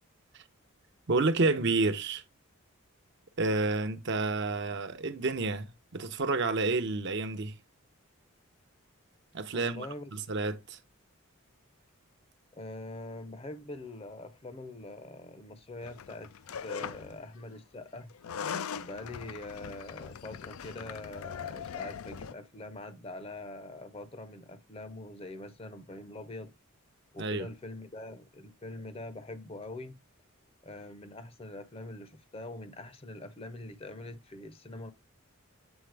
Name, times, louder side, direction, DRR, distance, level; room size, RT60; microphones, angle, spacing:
voice 1, 1.1-2.2 3.4-7.6 9.3-10.8 27.2-27.5, right 3 dB, 55° right, 0.7 m, -30 dB
voice 2, 9.5-10.1 12.5-16.3 16.6-18.1 18.8-26.5 27.1-30.0 30.6-34.9, left 2 dB, 25° left, 0.6 m, -43 dB
sound 1, 15.8-17.2 18.1-22.3, left 7 dB, 80° left, 0.4 m, -40 dB
8.0 x 4.1 x 3.3 m
head